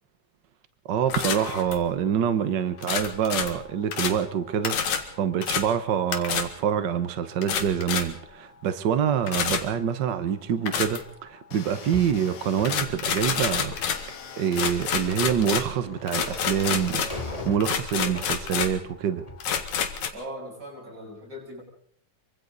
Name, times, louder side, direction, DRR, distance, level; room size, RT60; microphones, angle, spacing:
voice 1, 0.9-19.2, right 8 dB, 75° right, 1.0 m, -26 dB
sound 1, 1.1-1.9 2.8-4.3 4.6-5.1 5.4-5.7 6.1-6.5 7.4-8.2 9.3-9.7 10.7-11.1 12.6-14.1 14.5-17.3 17.6-18.8 19.4-20.1, left 7 dB, 65° left, 3.0 m, -28 dB
sound 2, 11.5-12.8 13.9-15.2 16.3-17.6, left 6 dB, 50° left, 2.2 m, -43 dB
sound 3, 11.9-18.8 19.1-19.7, left 2 dB, 10° left, 3.0 m, -41 dB
voice 2, 20.1-21.6, equal, 30° right, 8.4 m, -39 dB
26.5 x 24.5 x 4.1 m
omnidirectional pair, 3.6 m